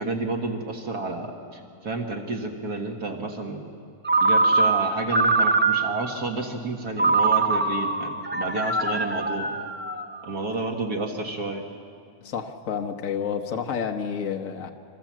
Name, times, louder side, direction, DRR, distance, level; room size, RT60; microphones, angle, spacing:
voice 1, 0.0-3.7 4.2-9.5 10.2-11.7, right 2 dB, 75° right, 2 dB, 2.2 m, -30 dB
Ringtone, 4.0-6.1 7.0-10.3, right 3 dB, 10° right, 0.5 m, -23 dB
voice 2, 12.2-14.7, left 7 dB, 60° left, 3 dB, 1.5 m, -30 dB
26.5 x 25.0 x 7.5 m, 2.4 s
omnidirectional pair, 1.6 m